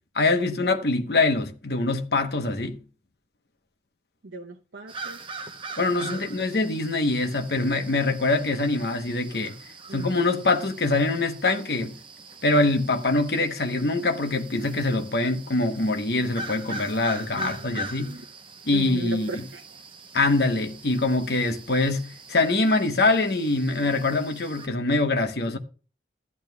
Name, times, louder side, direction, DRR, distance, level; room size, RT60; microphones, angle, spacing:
voice 1, 0.1-2.8 5.8-9.6 9.9-12.0 12.4-18.2 18.7-19.3 20.1-25.6, left 2 dB, 60° left, 1.0 m, -24 dB
voice 2, 4.2-5.2 6.1-6.5 9.9-10.2 17.4-18.2 18.7-19.6, right 2 dB, 85° right, 0.7 m, -37 dB
sound 1, 4.9-24.7, right 2 dB, 30° right, 0.8 m, -42 dB
14.0 x 11.0 x 2.3 m
head